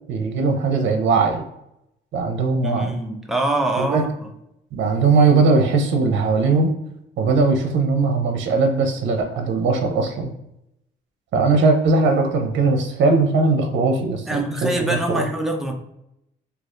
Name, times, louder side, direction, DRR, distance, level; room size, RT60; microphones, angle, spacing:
voice 1, 0.1-1.4 2.1-2.9 3.8-4.1 4.7-6.7 7.2-10.3 11.3-15.2, right 3 dB, 70° right, 4 dB, 0.7 m, -19 dB
voice 2, 2.6-4.3 14.3-15.7, right 1 dB, ahead, 2 dB, 0.6 m, -24 dB
4.0 x 2.8 x 2.5 m, 0.82 s
cardioid pair, 90°, 20 cm